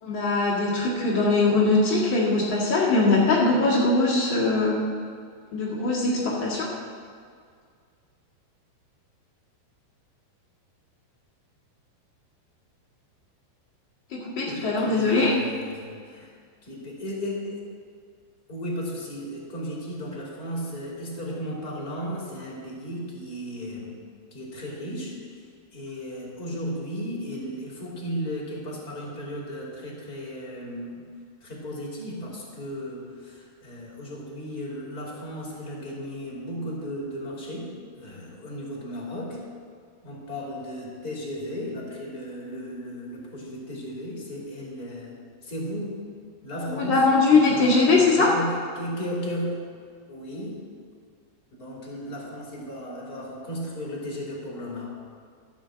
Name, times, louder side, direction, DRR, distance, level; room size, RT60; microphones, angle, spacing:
voice 1, 0.0-4.7 5.5-6.7 14.1-15.4 46.6-48.3, left 3 dB, 90° left, -6 dB, 1.0 m, -21 dB
voice 2, 14.4-16.3 16.6-17.6 18.5-24.0 24.3-25.1 25.7-31.0 31.4-37.7 37.9-39.4 40.0-45.1 45.4-46.0 46.4-47.0 47.3-49.6 50.1-50.6 51.6-54.9, equal, 25° left, -4 dB, 2.4 m, -35 dB
13.0 x 7.2 x 7.5 m, 2.1 s
omnidirectional pair, 5.5 m